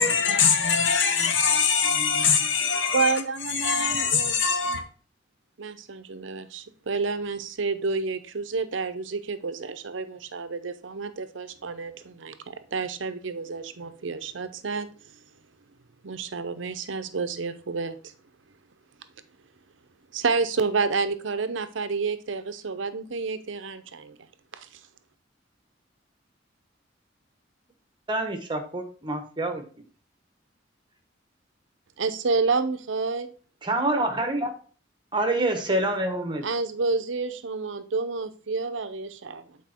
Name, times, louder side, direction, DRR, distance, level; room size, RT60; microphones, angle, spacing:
voice 1, 0.0-3.2 3.5-4.8, left 6 dB, 90° left, 1.2 m, -23 dB
voice 2, 2.9-4.4 5.6-15.2 16.0-18.1 20.1-24.2 24.5-24.8 32.0-33.3 36.4-39.6, right 4 dB, 90° right, 0.7 m, -29 dB
voice 3, 28.1-29.6 33.6-34.5 35.1-36.4, right 2 dB, 25° right, 1.2 m, -26 dB
8.3 x 4.3 x 4.3 m
head